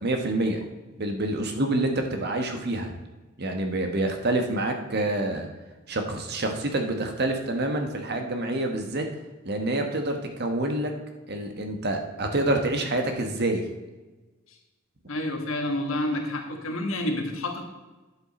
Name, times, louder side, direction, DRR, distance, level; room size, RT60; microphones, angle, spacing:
voice 1, 0.0-0.6 1.0-2.9 3.4-5.5 5.9-9.0 9.4-10.9 11.3-13.6, right 2 dB, 50° right, 4 dB, 1.3 m, -27 dB
voice 2, 15.1-17.6, left 1 dB, 75° left, 2 dB, 1.6 m, -29 dB
10.0 x 7.5 x 4.2 m, 1.2 s
head